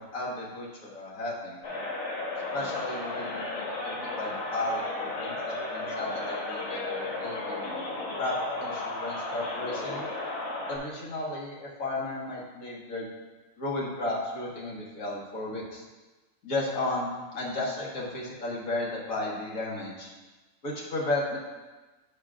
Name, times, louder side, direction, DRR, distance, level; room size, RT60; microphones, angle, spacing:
voice 1, 0.0-1.6 2.5-7.7 8.2-10.0 10.7-13.0 13.6-15.8 16.4-20.1 20.6-21.4, left 2 dB, 90° left, -4 dB, 1.9 m, -34 dB
sound 1, 1.6-10.8, left 2 dB, 55° left, 1.5 m, -34 dB
8.5 x 6.2 x 2.4 m, 1.2 s
omnidirectional pair, 1.4 m